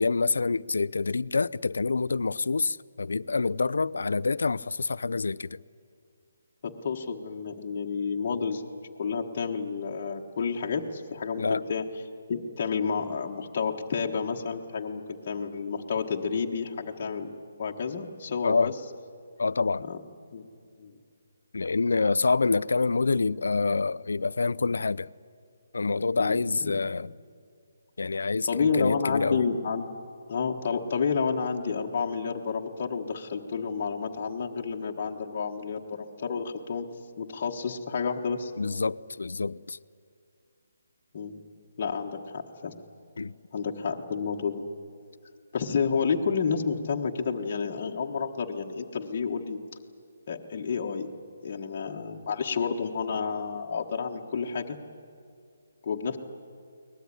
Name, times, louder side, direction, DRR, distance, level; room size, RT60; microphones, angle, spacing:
voice 1, 0.0-5.6 11.4-11.6 18.4-18.7 19.4-19.9 21.5-25.1 25.7-27.1 28.0-29.5 38.6-39.8 43.2-43.3, left 4 dB, 75° left, 0.6 m, -27 dB
voice 2, 6.6-8.6 9.0-11.8 12.3-17.3 17.6-18.7 19.8-20.0 20.3-20.5 20.8-21.0 26.2-26.8 28.5-29.9 30.3-36.9 37.2-38.5 41.1-41.4 41.8-42.7 43.5-44.6 45.5-49.6 50.3-51.1 51.4-54.8 55.8-56.2, left 5 dB, 30° left, 1.4 m, -30 dB
22.5 x 19.5 x 9.9 m
hypercardioid pair, 175°, 0 cm